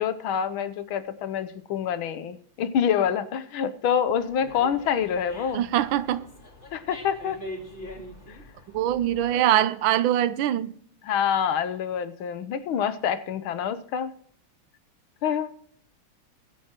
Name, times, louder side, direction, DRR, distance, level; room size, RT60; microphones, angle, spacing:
voice 1, 0.0-5.6 6.7-7.4 8.3-8.4 11.0-14.1 15.2-15.5, left 8 dB, 75° left, 1.6 m, -26 dB
Dog, 4.1-9.4, left 1 dB, 30° left, 3.3 m, -43 dB
voice 2, 5.5-6.3 8.7-10.7, right 12 dB, 75° right, 1.4 m, -23 dB
21.0 x 7.7 x 3.0 m
omnidirectional pair, 2.4 m